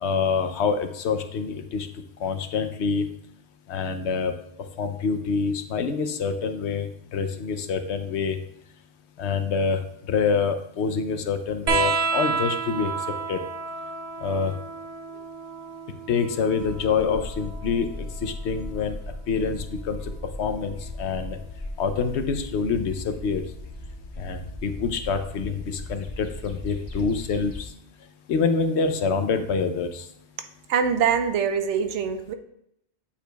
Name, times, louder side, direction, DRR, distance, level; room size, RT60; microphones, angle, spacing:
voice 1, 0.0-1.9 2.2-3.1 3.7-4.3 4.8-8.4 9.2-9.8 10.1-12.9 13.3-13.4 14.2-14.5 16.1-17.9 18.2-19.0 19.3-20.0 20.4-21.4 21.8-23.4 24.2-27.7 28.3-30.1, left 5 dB, 70° left, 8 dB, 0.9 m, -26 dB
sound 1, 11.7-18.7 20.1-20.9 22.2-22.3, right 5 dB, 50° right, 0.4 m, -31 dB
sound 2, 16.6-27.7, left 1 dB, 45° left, 0.9 m, -38 dB
voice 2, 30.7-32.3, right 7 dB, 80° right, 8 dB, 0.9 m, -23 dB
8.5 x 4.9 x 2.3 m, 0.75 s
omnidirectional pair, 1.2 m